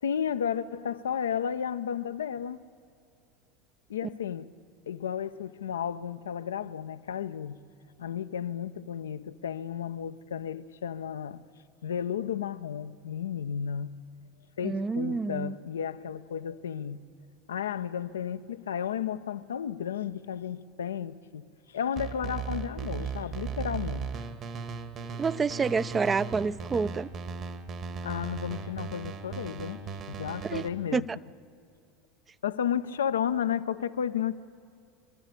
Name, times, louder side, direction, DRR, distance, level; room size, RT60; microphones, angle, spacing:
voice 1, 0.0-2.6 3.9-4.5 4.9-7.6 8.0-11.4 11.8-13.9 14.6-17.0 17.5-24.1 28.0-29.8 30.1-31.1 32.4-34.4, left 8 dB, 80° left, 0.7 m, -33 dB
voice 2, 14.6-15.6 25.2-27.1 30.4-30.7 30.9-31.0, right 5 dB, 25° right, 0.6 m, -28 dB
sound 1, 22.0-30.7, right 5 dB, 45° right, 1.8 m, -37 dB
26.5 x 13.0 x 8.4 m
hypercardioid pair, 80°, 0 cm